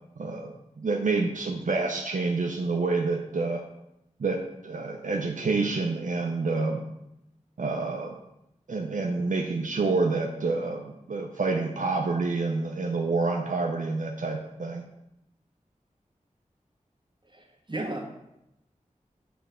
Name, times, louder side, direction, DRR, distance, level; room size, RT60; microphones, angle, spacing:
voice 1, 0.2-3.6 4.2-6.8 7.6-8.1 8.7-14.8, right 3 dB, 70° right, 1 dB, 0.6 m, -28 dB
voice 2, 17.3-18.0, right 2 dB, 35° right, 0 dB, 1.3 m, -34 dB
6.2 x 3.4 x 5.0 m, 0.86 s
wide cardioid pair, 40°, 14 cm